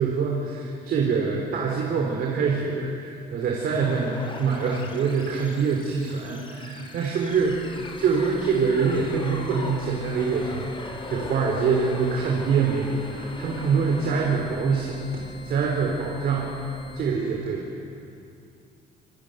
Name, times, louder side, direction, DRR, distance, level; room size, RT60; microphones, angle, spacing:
voice 1, 0.0-16.5 16.9-17.7, right 5 dB, 65° right, 0 dB, 4.1 m, -25 dB
sound 1, 3.7-14.4, left 3 dB, 30° left, 4.4 m, -40 dB
sound 2, 7.2-17.2, left 4 dB, 65° left, 5.4 m, -43 dB
27.5 x 21.5 x 9.5 m, 2.5 s
cardioid pair, 110°, 17 cm